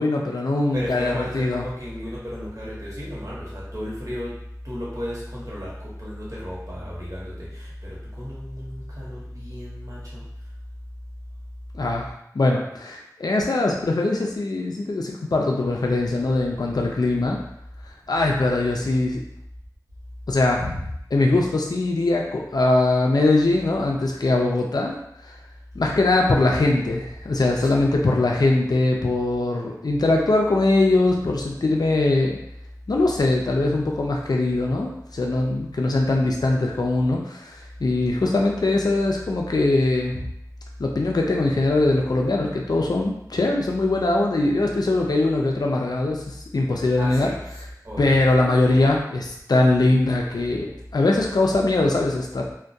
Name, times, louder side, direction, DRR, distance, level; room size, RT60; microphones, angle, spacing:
voice 1, 0.0-1.7 11.7-17.4 18.1-19.2 20.3-20.8 21.1-24.9 25.2-25.4 25.7-32.4 32.9-40.3 40.8-47.6 48.0-52.5, left 2 dB, 80° left, 0 dB, 0.3 m, -21 dB
voice 2, 0.7-3.4 3.7-4.3 4.7-5.7 6.0-7.2 8.2-8.4 9.5-10.0 47.0-47.1 47.9-48.1, equal, 55° right, -7 dB, 0.9 m, -33 dB
2.3 x 2.1 x 2.6 m, 0.76 s
wide cardioid pair, 40°, 7 cm